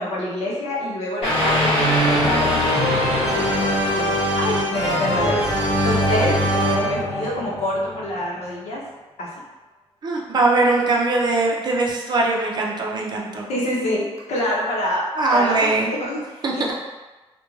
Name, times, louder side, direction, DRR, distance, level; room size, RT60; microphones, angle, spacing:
voice 1, 0.0-2.8 3.3-3.4 3.9-4.1 4.4-6.4 6.8-8.8 9.2-9.3 13.5-14.0 14.3-15.0 15.3-16.7, left 1 dB, 90° left, -4 dB, 0.7 m, -26 dB
sound 1, 1.2-8.2, equal, 60° left, 1.0 m, -21 dB
voice 2, 10.0-13.5 15.2-15.9 16.4-16.5, right 2 dB, 40° right, -2 dB, 0.5 m, -21 dB
2.4 x 2.2 x 3.0 m, 1.2 s
cardioid pair, 125°, 11 cm